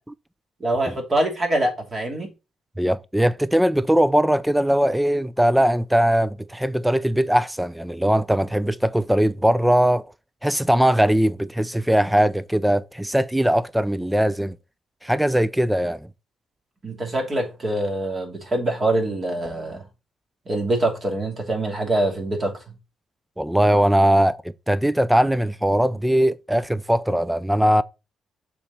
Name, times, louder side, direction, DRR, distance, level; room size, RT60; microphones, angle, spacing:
voice 1, 0.6-2.3 16.8-19.8 20.5-22.5, right 1 dB, 35° right, 2.8 m, -24 dB
voice 2, 2.8-10.0 10.4-14.6 15.0-16.0 23.4-24.4 24.7-27.8, right 1 dB, 5° right, 0.4 m, -20 dB
7.0 x 4.4 x 4.1 m
cardioid pair, 90°, 0 cm